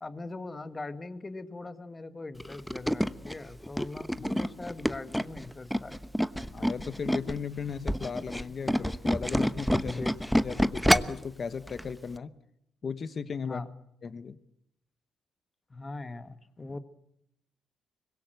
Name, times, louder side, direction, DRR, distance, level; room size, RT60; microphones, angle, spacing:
voice 1, 0.0-6.0 9.8-10.1 13.4-13.7 15.7-16.8, left 3 dB, 25° left, 10 dB, 1.8 m, -41 dB
Tools, 2.4-7.4 7.7-11.3 11.7-11.9 12.2-12.3, equal, ahead, 1.0 m, -28 dB
voice 2, 6.4-10.0 10.4-12.3 12.8-13.6 14.0-14.4 16.7-16.8, left 6 dB, 45° left, 12 dB, 1.2 m, -36 dB
24.5 x 21.5 x 8.0 m, 0.75 s
cardioid pair, 90°, 0 cm